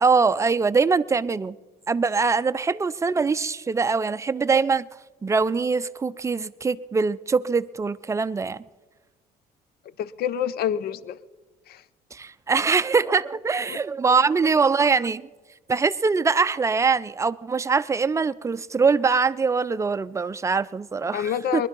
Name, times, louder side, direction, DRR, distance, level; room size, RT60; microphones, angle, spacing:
voice 1, 0.0-1.6 1.9-4.9 5.2-8.6 12.1-15.3 15.7-21.6, right 4 dB, 15° right, 0.5 m, -23 dB
voice 2, 10.0-11.2 11.7-11.8 13.7-13.8 21.1-21.7, left 9 dB, 65° left, 0.7 m, -27 dB
20.5 x 11.5 x 5.4 m
cardioid pair, 110°, 17 cm